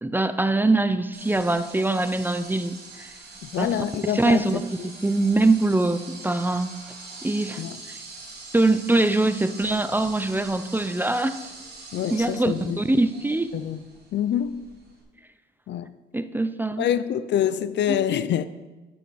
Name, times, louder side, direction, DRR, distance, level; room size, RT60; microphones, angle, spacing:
voice 1, 0.0-3.1 3.6-3.8 4.1-4.7 5.0-6.7 7.2-7.6 7.9-8.0 8.5-11.5 12.1-13.6 16.1-16.9 17.9-18.0, right 2 dB, 10° right, 0.5 m, -23 dB
sound 1, 1.1-15.0, right 3 dB, 55° right, 2.7 m, -43 dB
voice 2, 3.4-4.9 7.6-7.8 11.9-12.8 13.5-13.8 14.1-14.7 15.7-15.9 16.8-18.5, left 10 dB, 65° left, 0.5 m, -26 dB
7.2 x 7.0 x 6.3 m
cardioid pair, 90°, 20 cm